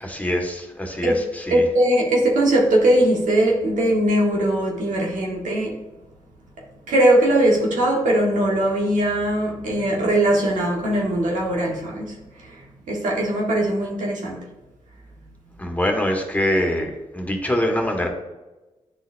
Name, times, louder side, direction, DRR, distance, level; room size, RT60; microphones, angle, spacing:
voice 1, 0.0-1.6 15.6-18.1, left 1 dB, 10° left, 1 dB, 1.6 m, -24 dB
voice 2, 1.5-5.8 6.9-12.1 12.4-12.6 12.9-14.4, right 1 dB, 85° right, -1 dB, 1.4 m, -20 dB
10.0 x 3.9 x 2.6 m, 1.1 s
cardioid pair, 50°, 13 cm